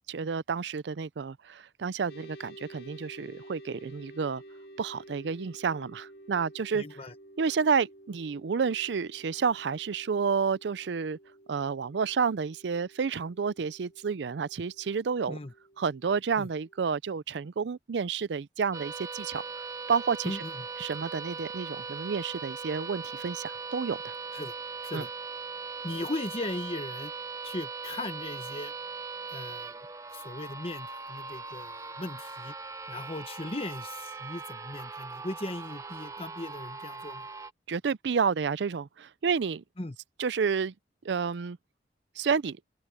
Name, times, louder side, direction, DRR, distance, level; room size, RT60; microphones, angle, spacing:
voice 1, 0.1-4.4 4.8-6.8 7.4-11.2 11.5-15.4 15.8-19.4 19.9-20.4 20.8-24.1 24.9-25.0 37.7-39.6 40.2-40.7 41.0-41.6 42.2-42.6, right 5 dB, 75° right, 0.5 m, -30 dB
sound 1, 2.1-16.8, right 1 dB, 55° left, 2.6 m, -52 dB
voice 2, 6.7-7.1 15.3-15.5 16.4-16.5 20.2-20.7 24.3-24.5 24.8-25.1 25.8-27.1 27.4-28.7 29.3-29.8 30.1-32.5 32.9-37.3 39.8-40.0, left 2 dB, 30° left, 1.2 m, -38 dB
sound 2, 18.7-37.5, right 4 dB, 20° right, 0.7 m, -40 dB
open air
head